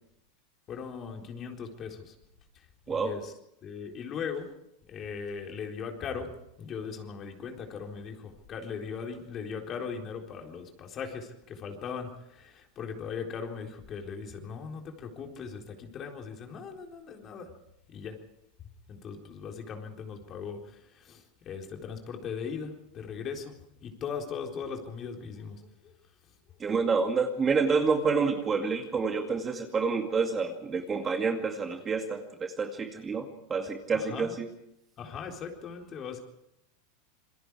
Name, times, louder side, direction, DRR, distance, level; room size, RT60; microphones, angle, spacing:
voice 1, 0.7-2.1 2.5-3.3 3.6-4.5 4.9-6.3 6.6-17.5 17.9-18.2 18.9-25.9 33.9-34.3 35.0-36.2, left 6 dB, 35° left, 2 dB, 4.0 m, -39 dB
voice 2, 26.6-34.5, right 5 dB, 25° right, 5 dB, 2.2 m, -28 dB
27.5 x 22.0 x 4.9 m, 0.80 s
supercardioid pair, 120°, 0 cm